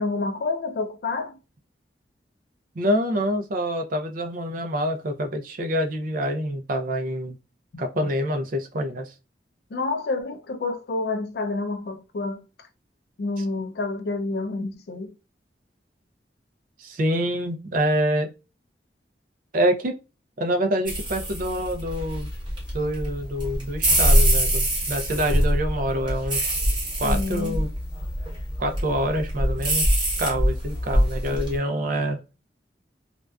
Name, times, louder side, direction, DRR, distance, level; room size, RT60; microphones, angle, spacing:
voice 1, 0.0-1.4 7.7-8.1 9.7-12.4 13.2-15.1 27.0-27.6, left 3 dB, 65° left, 0.4 m, -29 dB
voice 2, 2.8-7.4 7.8-9.1 13.4-13.5 16.8-18.3 19.5-20.0 20.4-22.3 22.7-26.6 27.0-27.7 28.6-29.9 30.2-32.2, equal, 50° right, 0.4 m, -26 dB
sound 1, 20.8-31.5, equal, 25° right, 0.9 m, -24 dB
2.5 x 2.2 x 2.2 m
head